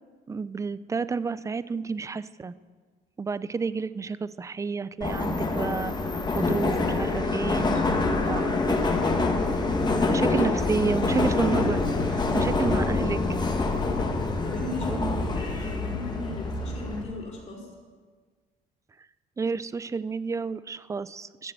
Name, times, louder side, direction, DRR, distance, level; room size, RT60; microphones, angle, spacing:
voice 1, 0.3-2.5 3.2-5.9 6.3-7.8 8.3-8.5 9.7-9.8 10.1-11.8 12.1-13.2 14.9-15.3 19.4-21.5, right 5 dB, 20° right, 17 dB, 0.4 m, -30 dB
Subway metro underground, 5.0-17.0, left 3 dB, 25° left, 1.7 m, -26 dB
voice 2, 7.6-9.2 14.4-15.0 15.3-17.7, left 2 dB, 45° left, -2 dB, 4.4 m, -37 dB
14.0 x 7.7 x 7.7 m, 1.5 s
cardioid pair, 110°, 17 cm